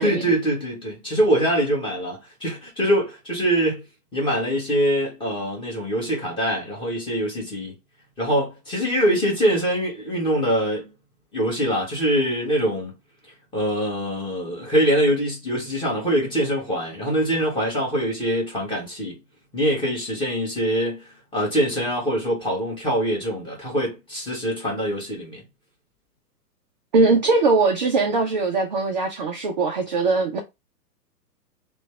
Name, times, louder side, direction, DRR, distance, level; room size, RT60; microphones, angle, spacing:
voice 1, 0.0-3.8 4.1-7.7 8.2-10.9 11.3-12.9 13.5-19.2 19.5-25.4, equal, 10° left, 1.3 m, -23 dB
voice 2, 26.9-30.4, right 3 dB, 30° right, 0.4 m, -21 dB
3.2 x 2.2 x 3.4 m
hypercardioid pair, 125°, 49 cm